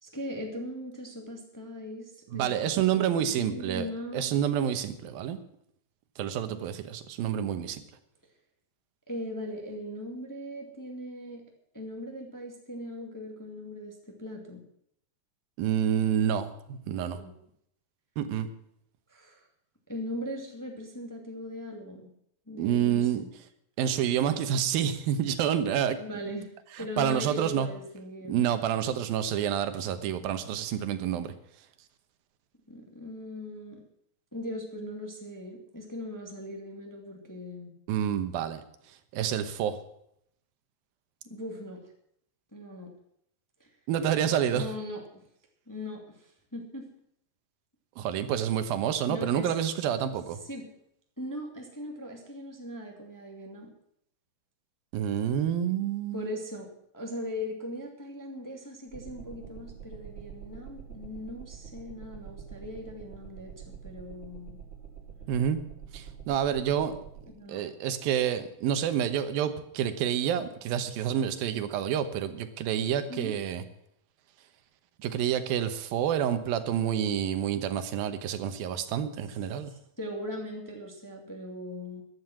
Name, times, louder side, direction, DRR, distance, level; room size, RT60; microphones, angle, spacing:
voice 1, 0.0-4.3 9.1-11.4 11.7-14.6 17.0-17.3 19.1-19.4 19.9-22.1 22.5-23.3 26.0-26.5 26.8-28.5 32.7-33.8 34.3-37.7 41.2-41.8 42.5-42.9 43.6-43.7 44.5-45.2 45.7-46.9 49.0-49.5 50.4-50.7 51.2-53.7 56.1-56.7 56.9-64.6 67.3-67.6 73.1-73.4 79.7-82.0, left 1 dB, 5° left, 1 dB, 1.7 m, -39 dB
voice 2, 2.3-5.4 6.2-7.8 15.6-17.2 18.2-18.5 22.6-23.2 23.8-26.0 26.8-27.7 28.3-31.3 37.9-38.6 39.1-39.8 43.9-44.7 48.0-50.4 54.9-56.3 65.3-65.6 65.9-66.9 67.5-73.6 75.0-79.7, right 9 dB, 90° right, 10 dB, 2.9 m, -28 dB
sound 1, 58.9-67.2, right 7 dB, 20° right, 3.6 m, -46 dB
14.5 x 11.5 x 6.0 m, 0.72 s
omnidirectional pair, 4.0 m